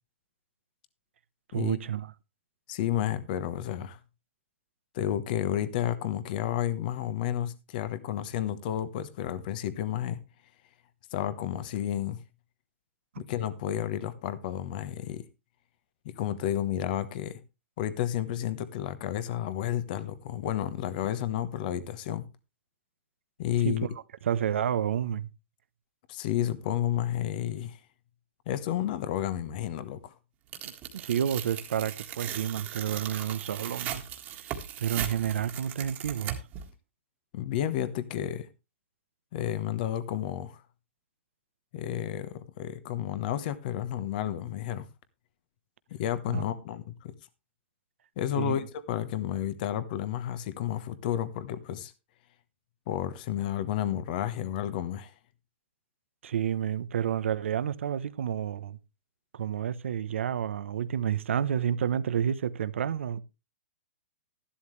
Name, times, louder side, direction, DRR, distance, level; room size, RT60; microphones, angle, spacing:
voice 1, 1.5-2.1 23.6-23.7 24.2-25.3 30.6-34.0 34.3-36.4 46.3-46.4 48.4-48.6 56.2-58.8 59.3-63.2, right 9 dB, 75° right, 0.9 m, -30 dB
voice 2, 2.7-4.0 4.9-10.2 11.1-12.2 13.2-15.2 16.0-17.4 17.8-22.2 23.4-23.9 26.1-27.8 28.5-30.1 37.3-38.5 39.3-40.6 41.7-44.8 45.9-47.1 48.2-51.9 52.9-55.1, left 11 dB, 45° left, 1.2 m, -31 dB
Tearing, 30.5-36.6, right 10 dB, 25° right, 1.7 m, -38 dB
13.0 x 11.5 x 3.2 m
hypercardioid pair, 155°, 7 cm